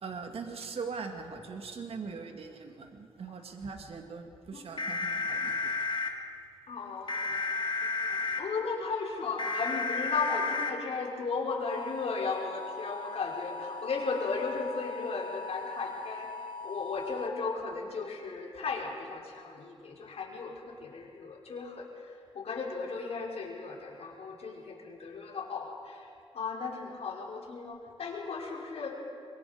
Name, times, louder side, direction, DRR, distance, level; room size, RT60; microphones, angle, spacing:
voice 1, 0.0-5.8, right 5 dB, 60° right, 4 dB, 2.3 m, -41 dB
sound 1, 4.8-6.1 7.1-8.4 9.4-10.7 11.7-17.3, left 3 dB, 45° left, 2.3 m, -35 dB
voice 2, 6.7-29.0, left 4 dB, 65° left, -2 dB, 4.9 m, -36 dB
26.0 x 22.5 x 5.2 m, 2.3 s
cardioid pair, 65°, 11 cm